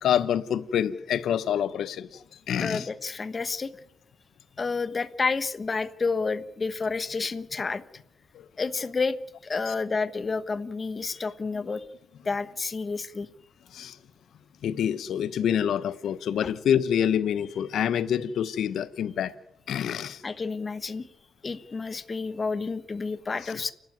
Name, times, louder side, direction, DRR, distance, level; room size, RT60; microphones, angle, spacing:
voice 1, 0.0-2.9 8.3-8.4 9.7-9.8 13.7-14.0 14.6-19.3 19.7-20.2 23.4-23.5, left 9 dB, 75° left, 0.9 m, -27 dB
voice 2, 2.6-3.7 4.6-7.8 8.6-9.2 9.4-11.8 12.2-13.3 16.4-16.5 20.2-21.1 21.4-23.7, left 4 dB, 30° left, 1.3 m, -30 dB
29.5 x 12.5 x 9.4 m
cardioid pair, 110°, 0 cm